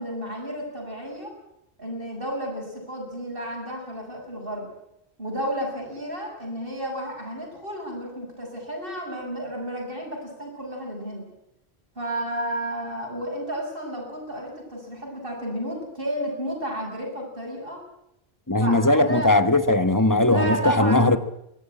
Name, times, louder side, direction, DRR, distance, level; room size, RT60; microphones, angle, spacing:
voice 1, 0.0-1.3 1.8-4.7 5.2-11.3 11.9-17.8 18.6-19.3 20.2-21.1, equal, 55° right, 0 dB, 6.9 m, -32 dB
voice 2, 18.5-21.2, left 2 dB, 20° left, 11 dB, 1.3 m, -19 dB
23.5 x 17.5 x 8.9 m, 0.80 s
omnidirectional pair, 1.1 m